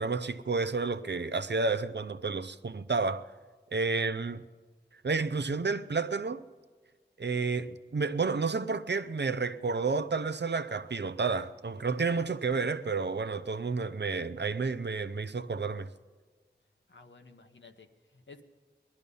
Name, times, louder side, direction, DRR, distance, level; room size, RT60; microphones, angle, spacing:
voice 1, 0.0-3.2 3.7-4.4 5.0-6.4 7.2-15.9, right 4 dB, 70° right, 0.7 m, -31 dB
voice 2, 16.9-18.4, left 4 dB, 85° left, 1.1 m, -54 dB
19.5 x 12.0 x 5.5 m
wide cardioid pair, 45°, 19 cm